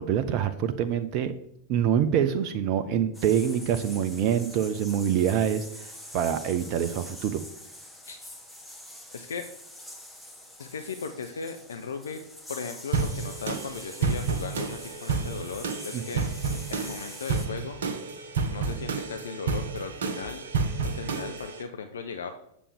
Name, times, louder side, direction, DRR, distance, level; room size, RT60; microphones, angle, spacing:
voice 1, 0.0-1.3 1.7-7.4 15.9-16.2, right 9 dB, 40° right, 10 dB, 0.5 m, -26 dB
sound 1, 3.1-17.5, left 1 dB, 5° left, 1.3 m, -45 dB
voice 2, 9.1-9.5 10.6-12.2 12.5-16.3 16.7-17.8 18.5-20.4 20.8-22.3, left 5 dB, 65° left, 7 dB, 0.5 m, -37 dB
sound 2, 12.9-21.6, right 5 dB, 65° right, 0.9 m, -30 dB
8.5 x 6.9 x 3.5 m, 0.75 s
figure-of-eight pair, 90°, 0 cm